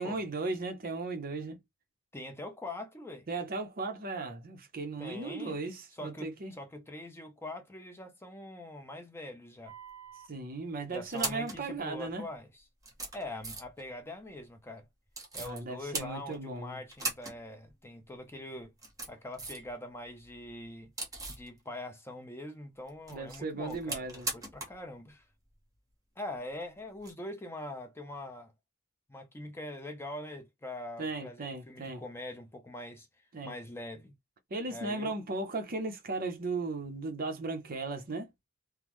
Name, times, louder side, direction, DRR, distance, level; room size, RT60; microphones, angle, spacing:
voice 1, 0.0-1.6 3.3-6.5 10.3-12.3 15.3-16.8 23.1-24.3 31.0-32.0 33.3-33.5 34.5-38.3, right 3 dB, 40° right, 0.7 m, -36 dB
voice 2, 2.1-3.3 5.0-5.6 6.0-9.8 10.9-12.6 13.1-14.9 15.3-18.7 19.1-20.9 21.3-25.3 26.2-28.5 29.1-33.1 33.4-34.1 34.7-35.1, left 1 dB, 10° left, 0.5 m, -43 dB
sound 1, 9.7-10.3 10.9-11.6 12.4-12.5 12.8-13.8 15.1-15.6 15.9-16.6 16.9-17.4 17.7-17.8 18.6-19.7 20.0-21.5 22.9-24.8 25.1-25.2 27.0-27.1, right 3 dB, 15° right, 0.9 m, -39 dB
3.5 x 2.0 x 3.0 m
head